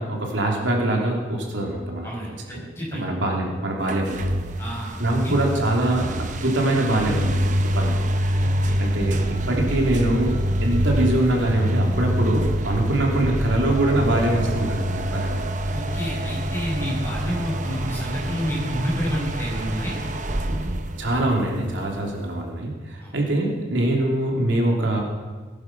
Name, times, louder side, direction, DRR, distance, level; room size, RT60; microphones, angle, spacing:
voice 1, 0.0-2.1 2.5-2.6 2.9-4.3 5.0-7.5 7.7-8.0 8.8-15.4 17.3-17.4 21.0-25.0, right 1 dB, 75° right, 0 dB, 3.1 m, -23 dB
voice 2, 2.0-3.1 4.6-4.9 5.2-5.3 8.4-8.8 15.7-20.0 23.0-23.1, equal, 15° left, -5 dB, 5.9 m, -29 dB
sound 1, 3.8-22.3, equal, 40° right, 0.9 m, -26 dB
19.0 x 11.0 x 6.0 m, 1.4 s
head